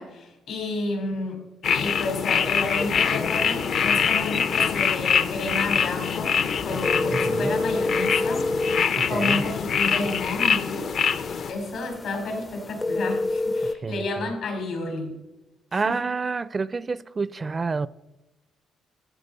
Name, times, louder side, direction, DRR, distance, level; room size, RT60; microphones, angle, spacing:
voice 1, 0.0-1.4 1.6-6.3 6.6-8.5 9.1-11.1 11.5-15.2 15.7-15.9, left 2 dB, 80° left, 4.4 m, -31 dB
sound 1, 1.6-11.5, left 6 dB, 60° left, 0.7 m, -24 dB
sound 2, 2.8-13.7, left 2 dB, 25° left, 0.4 m, -31 dB
voice 2, 7.1-7.6 8.9-9.5 13.6-14.3 15.7-17.9, right 4 dB, 30° right, 0.4 m, -29 dB
14.5 x 7.8 x 5.5 m
cardioid pair, 90°, 0 cm